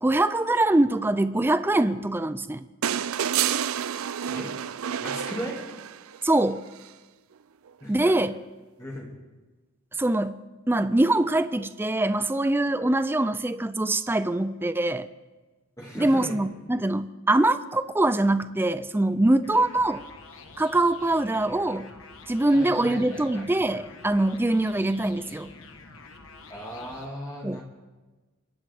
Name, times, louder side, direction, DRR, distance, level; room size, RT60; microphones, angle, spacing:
voice 1, 0.0-2.6 6.2-6.6 7.9-8.3 9.9-10.4 10.7-15.1 15.9-20.0 20.6-21.9 22.3-25.5 27.4-27.6, right 2 dB, 10° right, 12 dB, 0.4 m, -23 dB
sound 1, 2.8-6.2 7.7-7.8, right 9 dB, 80° right, 0.4 m, -29 dB
voice 2, 5.0-5.6 7.8-8.1 8.8-9.1 15.8-16.4 22.5-23.5 26.5-27.6, equal, 15° left, -3 dB, 2.2 m, -37 dB
sound 2, 19.4-27.1, left 3 dB, 70° left, 1.3 m, -48 dB
25.0 x 11.0 x 3.6 m, 1.2 s
head